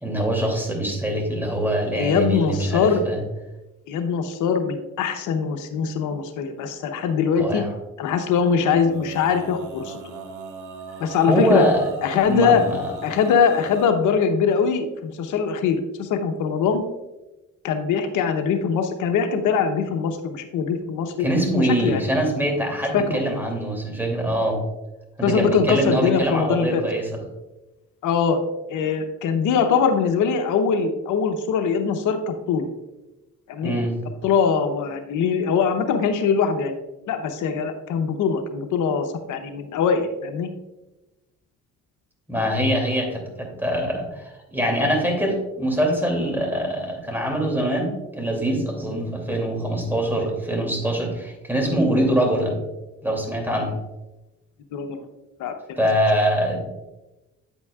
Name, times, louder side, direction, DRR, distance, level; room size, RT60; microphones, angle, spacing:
voice 1, 0.0-3.2 7.4-7.7 11.3-11.9 12.3-12.9 21.2-24.6 25.2-27.1 33.6-34.0 42.3-52.6 53.0-53.7 55.8-56.6, right 1 dB, 5° right, 1 dB, 2.6 m, -23 dB
voice 2, 1.9-3.0 3.9-7.6 8.0-10.0 11.0-11.6 12.0-12.6 13.0-16.8 17.6-21.3 21.5-22.0 22.9-23.2 25.2-26.8 28.0-28.4 28.7-32.7 33.5-33.7 34.2-36.7 37.1-40.5 54.7-55.0 55.4-55.8, left 6 dB, 85° left, 7 dB, 0.8 m, -22 dB
Male singing, 8.6-13.9, right 4 dB, 85° right, 1.3 m, -39 dB
8.9 x 8.2 x 2.4 m, 1.0 s
cardioid pair, 90°, 30 cm